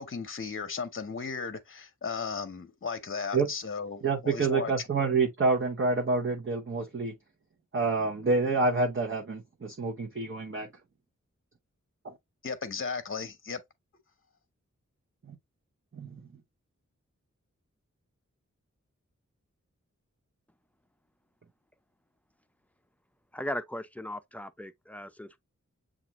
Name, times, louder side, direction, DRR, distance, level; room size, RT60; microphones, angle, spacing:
voice 1, 0.0-4.9 12.4-13.6, left 5 dB, 45° left, 0.7 m, -35 dB
voice 2, 4.0-7.1 7.7-10.7 12.0-12.1 15.9-16.2, right 3 dB, 45° right, 0.8 m, -28 dB
voice 3, 23.3-25.4, left 1 dB, 5° left, 0.4 m, -37 dB
7.2 x 2.5 x 2.9 m
wide cardioid pair, 75°, 30 cm